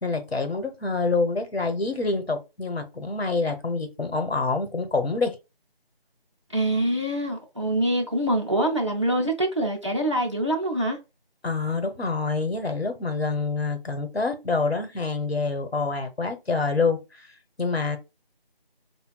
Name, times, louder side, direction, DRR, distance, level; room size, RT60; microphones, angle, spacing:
voice 1, 0.0-5.4 11.4-17.3 17.6-18.0, left 3 dB, 85° left, 1.1 m, -26 dB
voice 2, 6.5-11.0, right 1 dB, 30° right, 0.6 m, -25 dB
5.1 x 2.2 x 2.3 m
figure-of-eight pair, 170°, 30 cm